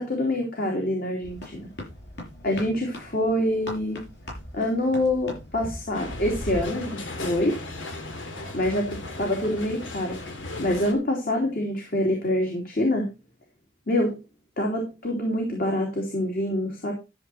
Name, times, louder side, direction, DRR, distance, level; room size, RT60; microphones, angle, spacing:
voice 1, 0.0-1.7 2.4-4.0 4.5-7.6 8.5-10.2 10.6-13.1 13.9-14.2 14.6-16.9, left 1 dB, 50° left, 1 dB, 3.1 m, -26 dB
sound 1, 1.2-6.7, equal, 65° left, 7.8 m, -39 dB
sound 2, 5.9-10.9, left 2 dB, 90° left, 2.6 m, -37 dB
13.0 x 7.7 x 4.3 m, 0.27 s
head